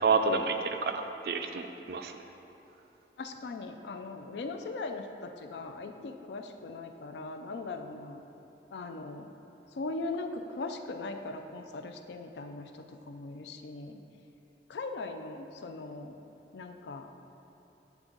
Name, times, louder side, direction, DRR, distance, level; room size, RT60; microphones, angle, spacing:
voice 1, 0.0-2.1, right 4 dB, 60° right, 7 dB, 0.4 m, -29 dB
voice 2, 3.2-8.2 8.7-9.3 9.7-14.0 14.7-16.1 16.5-17.1, left 3 dB, 75° left, 6 dB, 0.4 m, -39 dB
9.3 x 3.5 x 3.8 m, 2.9 s
head